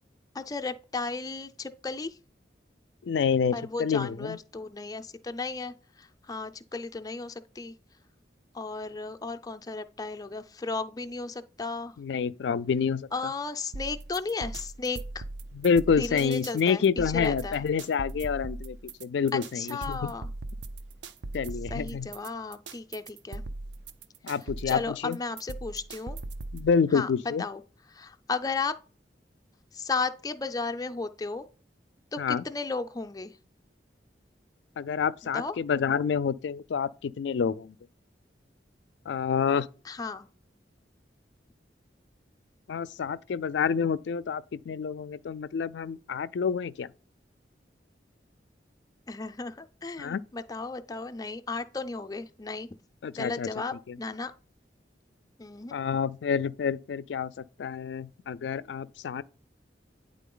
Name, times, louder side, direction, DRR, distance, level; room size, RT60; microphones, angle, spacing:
voice 1, 0.3-2.2 3.5-7.7 8.5-11.9 13.1-15.2 16.0-17.6 19.3-20.3 21.7-23.4 24.7-26.2 26.9-27.1 27.4-27.6 27.9-28.7 29.7-31.5 32.1-33.3 35.3-35.5 39.8-40.3 49.1-52.7 53.2-54.3 55.4-55.7, left 4 dB, 20° left, 0.4 m, -34 dB
voice 2, 3.0-4.4 12.0-13.1 15.5-20.1 21.3-22.1 24.2-25.2 26.5-27.4 32.2-32.4 34.8-37.7 39.1-39.7 42.7-46.9 50.0-50.2 53.0-53.5 53.9-54.0 55.7-57.3 57.6-59.2, left 6 dB, 85° left, 0.4 m, -28 dB
sound 1, 13.7-26.7, right 2 dB, 85° right, 0.5 m, -39 dB
9.2 x 3.8 x 3.8 m
head